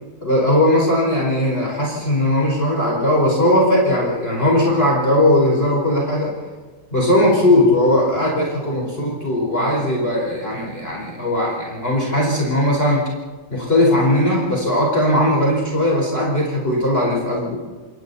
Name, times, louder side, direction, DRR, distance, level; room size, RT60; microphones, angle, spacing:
voice 1, 0.2-6.3 6.9-13.0 13.5-17.6, left 1 dB, 25° left, -3 dB, 5.1 m, -18 dB
28.5 x 27.0 x 4.2 m, 1.4 s
omnidirectional pair, 2.2 m